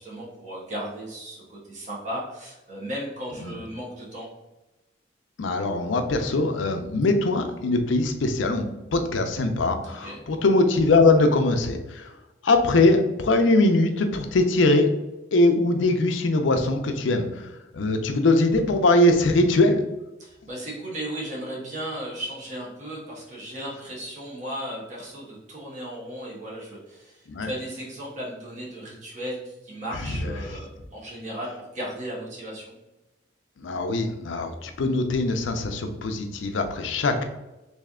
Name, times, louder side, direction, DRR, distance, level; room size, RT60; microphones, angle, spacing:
voice 1, 0.0-4.3 10.0-10.2 20.2-32.8, right 1 dB, 40° right, -5 dB, 1.2 m, -36 dB
voice 2, 5.4-8.7 8.9-12.1 12.4-14.9 15.3-17.4 17.7-19.8 27.3-27.5 30.2-30.3 33.6-37.2, left 2 dB, 80° left, 7 dB, 0.5 m, -21 dB
3.2 x 2.7 x 3.6 m, 1.0 s
head